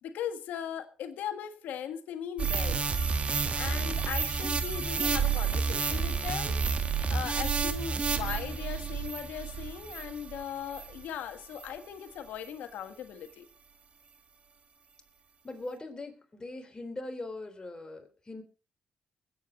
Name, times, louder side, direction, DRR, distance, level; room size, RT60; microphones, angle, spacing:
voice 1, 0.0-2.8 3.5-6.6 7.1-13.4, left 9 dB, 85° left, 8 dB, 1.4 m, -38 dB
sound 1, 2.4-11.0 11.6-11.7, right 5 dB, 50° right, 1.6 m, -30 dB
voice 2, 15.4-18.4, left 2 dB, 30° left, 5 dB, 3.7 m, -41 dB
22.0 x 8.8 x 3.9 m, 0.37 s
cardioid pair, 65°, 3 cm